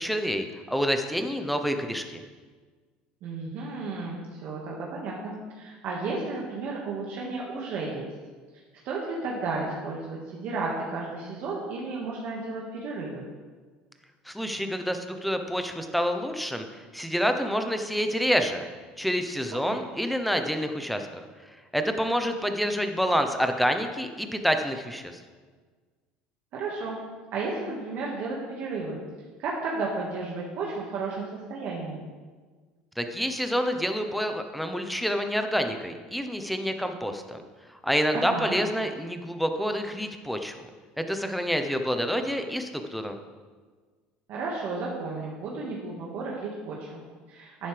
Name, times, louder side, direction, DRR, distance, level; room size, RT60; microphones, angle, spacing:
voice 1, 0.0-2.2 14.3-18.6 19.0-21.1 21.7-25.2 33.0-37.4 37.8-40.6 41.0-43.2, equal, ahead, 6 dB, 0.8 m, -28 dB
voice 2, 3.2-8.1 8.9-13.2 19.7-19.8 26.5-27.0 27.3-29.0 29.4-32.0 38.1-38.5 44.3-47.7, right 3 dB, 55° right, -3 dB, 1.8 m, -33 dB
11.5 x 9.2 x 3.4 m, 1.5 s
cardioid pair, 125°, 4 cm